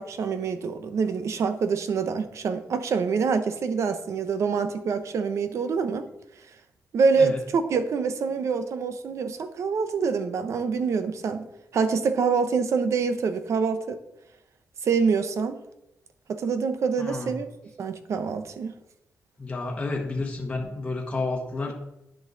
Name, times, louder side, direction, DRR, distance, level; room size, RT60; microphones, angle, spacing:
voice 1, 0.0-6.0 6.9-11.5 11.7-14.0 14.8-15.6 16.3-17.5 17.8-18.7, right 5 dB, 60° right, 9 dB, 0.8 m, -26 dB
voice 2, 17.0-17.3 19.4-21.7, left 3 dB, 20° left, -1 dB, 1.3 m, -30 dB
10.0 x 6.3 x 3.9 m, 0.87 s
wide cardioid pair, 145°, 6 cm